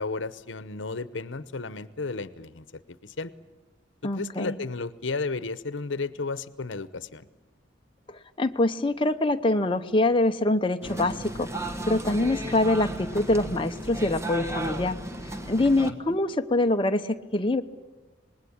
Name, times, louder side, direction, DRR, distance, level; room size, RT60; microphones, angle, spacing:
voice 1, 0.0-3.3 4.1-7.3 15.9-16.2, left 3 dB, 90° left, 15 dB, 0.9 m, -33 dB
voice 2, 4.0-4.6 8.1-11.5 11.9-15.0 15.5-17.6, left 2 dB, 30° left, 6 dB, 0.8 m, -24 dB
sound 1, 10.8-15.9, right 1 dB, 15° right, 1.4 m, -34 dB
26.5 x 20.0 x 8.7 m, 1.2 s
head